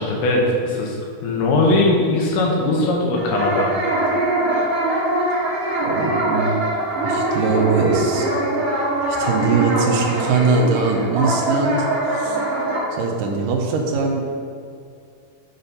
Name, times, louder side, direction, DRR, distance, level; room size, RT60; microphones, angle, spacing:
voice 1, 0.0-3.7, left 2 dB, 75° left, -1 dB, 2.7 m, -20 dB
sound 1, 3.2-12.8, right 1 dB, 50° right, 1.9 m, -22 dB
voice 2, 5.9-6.6 7.0-8.3 9.1-12.4 12.9-14.2, right 4 dB, 80° right, 0 dB, 1.9 m, -21 dB
8.0 x 4.2 x 5.2 m, 2.3 s
omnidirectional pair, 4.8 m